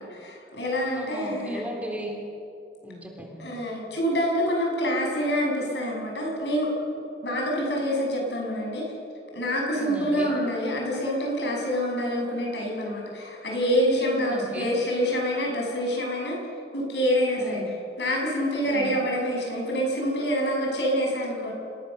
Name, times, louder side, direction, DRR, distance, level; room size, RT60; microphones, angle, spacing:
voice 1, 0.0-1.6 3.4-6.7 7.2-8.8 9.3-16.4 16.7-17.6 18.0-21.5, equal, 75° left, -1 dB, 7.5 m, -26 dB
voice 2, 0.9-2.2 2.8-3.4 9.8-10.4 14.0-14.7 17.4-17.7 18.6-18.9, equal, 10° right, 0 dB, 3.6 m, -36 dB
27.0 x 20.0 x 6.9 m, 2.5 s
head